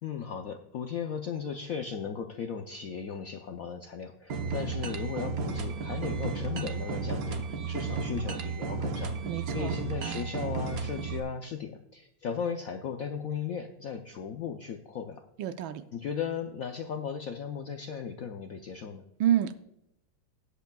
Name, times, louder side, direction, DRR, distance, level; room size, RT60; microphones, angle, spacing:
voice 1, 0.0-15.2 15.9-19.0, left 7 dB, 70° left, 5 dB, 0.8 m, -36 dB
sound 1, 4.3-11.2, right 4 dB, 55° right, 1.2 m, -33 dB
voice 2, 9.2-9.8 15.4-15.8 19.2-19.6, right 11 dB, 75° right, 11 dB, 1.4 m, -28 dB
19.0 x 8.1 x 2.3 m, 0.83 s
omnidirectional pair, 2.3 m